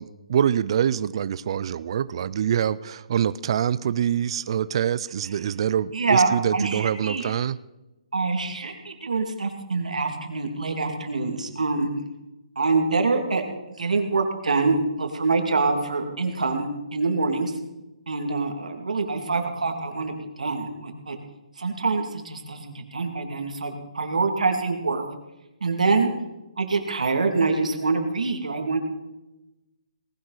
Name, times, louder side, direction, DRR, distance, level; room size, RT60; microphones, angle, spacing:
voice 1, 0.0-7.6, right 9 dB, 45° right, 16 dB, 0.5 m, -25 dB
voice 2, 5.9-7.3 8.1-11.9 12.6-13.4 13.8-17.5 18.1-21.2 21.6-25.0 25.6-26.1 26.6-28.8, right 3 dB, 85° right, 4 dB, 2.5 m, -25 dB
19.0 x 11.0 x 4.1 m, 1.0 s
hypercardioid pair, 155°, 4 cm